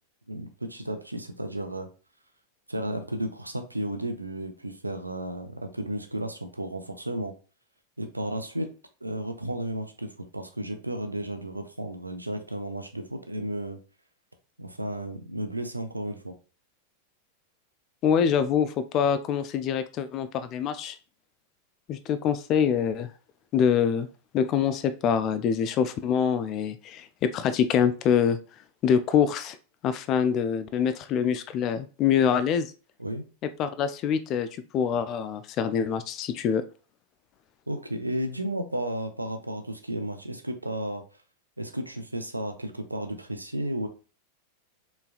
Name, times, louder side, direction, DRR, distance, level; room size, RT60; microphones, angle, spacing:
voice 1, 0.3-1.9 2.7-7.3 8.0-8.7 9.0-13.8 14.6-16.3 33.0-33.2 37.7-41.0 41.6-43.9, right 1 dB, 85° right, 7 dB, 0.5 m, -33 dB
voice 2, 18.0-21.0 21.9-23.1 23.5-24.1 24.3-28.4 28.8-29.6 29.8-32.7 33.6-34.5 34.7-36.6, left 7 dB, 35° left, 12 dB, 0.4 m, -25 dB
4.4 x 3.3 x 2.4 m, 0.36 s
figure-of-eight pair, 90°, 0 cm